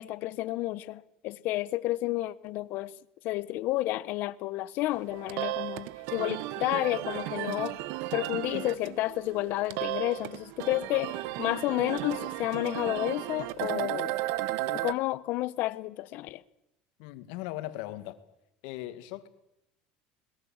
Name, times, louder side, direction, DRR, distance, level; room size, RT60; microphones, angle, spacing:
voice 1, 0.0-2.9 3.2-7.8 8.1-14.1 14.7-16.4, left 17 dB, 60° left, 1.1 m, -31 dB
sound 1, 5.0-14.9, right 16 dB, 70° right, 0.9 m, -35 dB
voice 2, 17.0-18.2 18.6-19.3, left 15 dB, 80° left, 2.1 m, -38 dB
22.0 x 21.5 x 7.3 m
cardioid pair, 135°, 4 cm